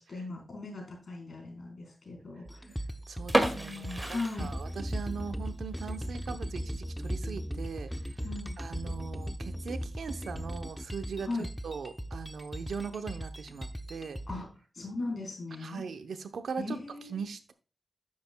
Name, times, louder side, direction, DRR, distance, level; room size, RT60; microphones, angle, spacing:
voice 1, 0.1-2.6 3.5-4.5 8.2-8.5 11.2-11.5 14.3-14.5 14.8-15.8 16.6-17.2, left 3 dB, 70° left, 1 dB, 4.0 m, -38 dB
sound 1, 2.5-14.4, equal, 5° left, 0.8 m, -38 dB
voice 2, 3.1-7.9 8.6-14.2 15.6-16.8 17.1-17.5, right 5 dB, 90° right, 9 dB, 0.7 m, -40 dB
sound 2, 3.2-5.1 5.5-5.6 6.1-6.3 6.7-6.8 7.0-7.1 7.9-8.2, right 1 dB, 20° right, 2.0 m, -31 dB
10.5 x 7.5 x 2.2 m, 0.34 s
cardioid pair, 50°, 0 cm